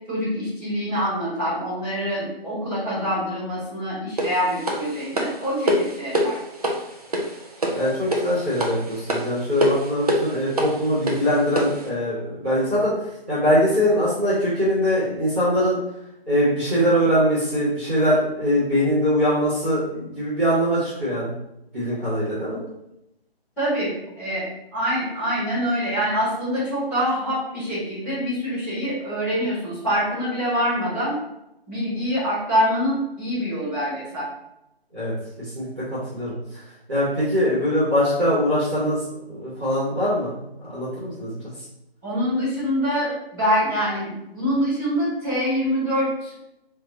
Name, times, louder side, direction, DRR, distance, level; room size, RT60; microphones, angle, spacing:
voice 1, 0.1-6.4 23.6-24.4 24.7-31.1 31.7-34.3 42.0-46.3, equal, 5° left, -17 dB, 1.6 m, -25 dB
sound 1, 4.2-11.9, equal, 40° right, 0.6 m, -26 dB
voice 2, 7.7-15.8 16.2-21.4 21.7-22.6 34.9-35.1 35.5-36.6 36.9-39.0 39.3-41.4, equal, 10° right, -17 dB, 1.1 m, -22 dB
4.0 x 3.2 x 3.9 m, 0.85 s
hypercardioid pair, 175°, 31 cm